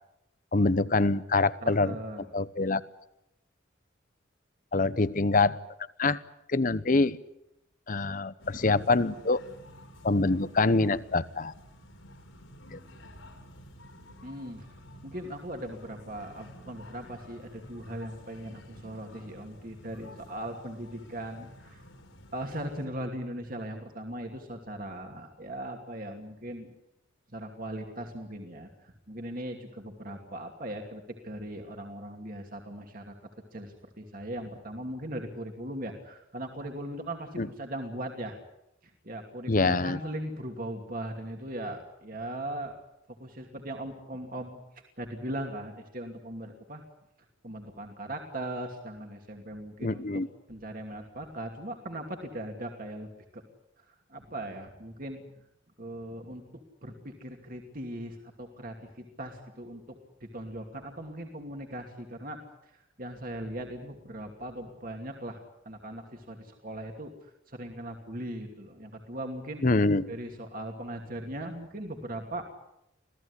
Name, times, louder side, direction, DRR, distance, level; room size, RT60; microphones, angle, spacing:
voice 1, 0.5-2.0 2.3-2.8 4.7-5.6 6.0-6.2 6.5-7.2 7.9-9.4 10.0-11.5 12.7-12.8 37.4-37.5 39.5-40.0 49.8-50.3 69.6-70.1, left 3 dB, 40° left, 15 dB, 0.8 m, -25 dB
voice 2, 1.6-2.2 14.2-14.7 15.0-21.8 22.3-26.7 27.3-33.2 33.5-38.4 38.8-42.7 43.1-46.8 47.4-50.1 50.5-53.4 53.8-53.9 54.1-55.2 55.8-59.8 60.2-69.6 70.1-72.5, right 1 dB, 45° right, 3 dB, 2.6 m, -39 dB
sound 1, 8.4-22.9, equal, 85° left, 5.3 m, -51 dB
26.5 x 17.0 x 9.8 m, 0.85 s
head